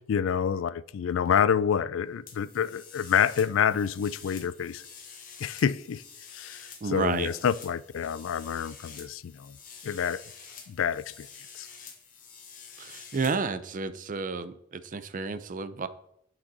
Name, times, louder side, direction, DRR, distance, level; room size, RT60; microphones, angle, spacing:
voice 1, 0.1-4.8 5.4-6.0 6.3-9.6 9.8-10.2 10.7-11.3 11.5-11.7, left 7 dB, 70° left, 0.3 m, -28 dB
sound 1, 2.3-13.4, left 6 dB, 45° left, 1.5 m, -48 dB
voice 2, 6.8-7.3 12.8-15.9, right 4 dB, 40° right, 0.5 m, -31 dB
9.0 x 6.1 x 4.0 m
head